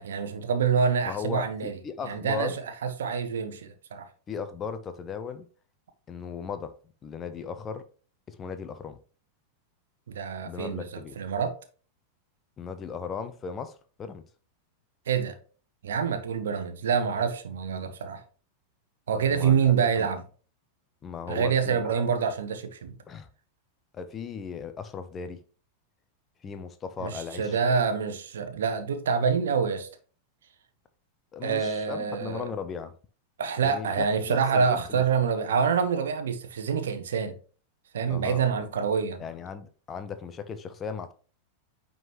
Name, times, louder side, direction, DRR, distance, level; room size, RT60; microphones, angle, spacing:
voice 1, 0.0-1.7 2.0-2.5 2.8-4.1 10.1-11.5 15.1-15.4 15.8-18.2 19.1-20.2 21.3-22.9 27.0-29.9 31.4-32.4 33.4-37.4 37.9-39.2, right 6 dB, 65° right, 1.0 m, -26 dB
voice 2, 1.1-2.6 4.3-5.5 6.1-6.7 7.0-7.9 8.3-9.0 10.4-11.2 12.6-14.2 19.3-20.1 21.0-22.0 23.1-23.3 23.9-25.4 26.4-27.6 31.3-33.0 33.6-35.3 38.1-38.4 39.2-41.1, left 6 dB, 25° left, 0.7 m, -37 dB
9.1 x 3.9 x 3.1 m
figure-of-eight pair, 90°, 0 cm